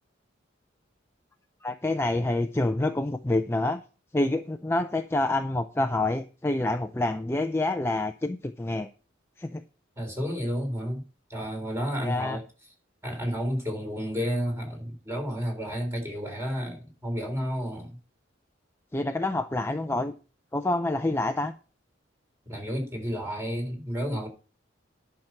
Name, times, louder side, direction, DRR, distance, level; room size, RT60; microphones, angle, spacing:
voice 1, 1.6-3.8 4.1-8.9 9.4-9.6 12.0-12.4 18.9-20.1 20.5-21.5, left 2 dB, 15° left, 0.5 m, -27 dB
voice 2, 10.0-11.0 11.3-12.4 13.0-18.0 22.5-24.3, equal, 15° right, 3.6 m, -31 dB
11.0 x 5.9 x 5.8 m
head